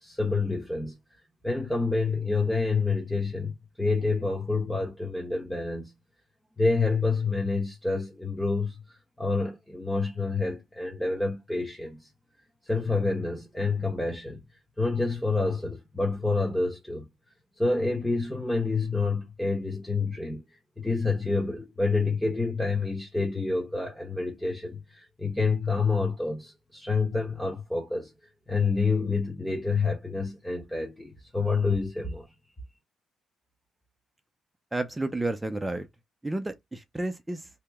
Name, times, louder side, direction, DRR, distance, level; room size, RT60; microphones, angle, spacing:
voice 1, 0.0-1.0 1.4-5.9 6.6-12.1 12.6-14.4 14.8-17.1 17.6-20.4 20.8-28.1 28.5-32.3, left 3 dB, 10° left, 1.0 m, -28 dB
voice 2, 34.7-35.9 36.2-37.5, right 2 dB, 10° right, 0.5 m, -31 dB
2.9 x 2.7 x 3.4 m
cardioid pair, 90°, 0 cm